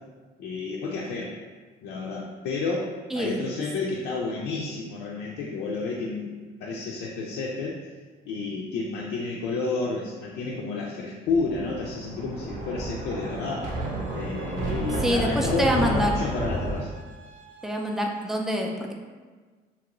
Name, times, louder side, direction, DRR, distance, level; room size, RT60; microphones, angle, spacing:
voice 1, 0.4-1.4 1.8-7.8 8.3-13.7 14.1-16.9, left 3 dB, 80° left, -3 dB, 0.4 m, -30 dB
voice 2, 3.1-3.4 15.0-16.2 17.6-18.9, equal, ahead, 1 dB, 0.3 m, -26 dB
Thunder, 11.3-16.8, right 1 dB, 50° right, 0.7 m, -31 dB
sound 1, 13.2-18.2, right 1 dB, 85° right, 0.9 m, -50 dB
2.9 x 2.5 x 2.9 m, 1.4 s
cardioid pair, 110°, 17 cm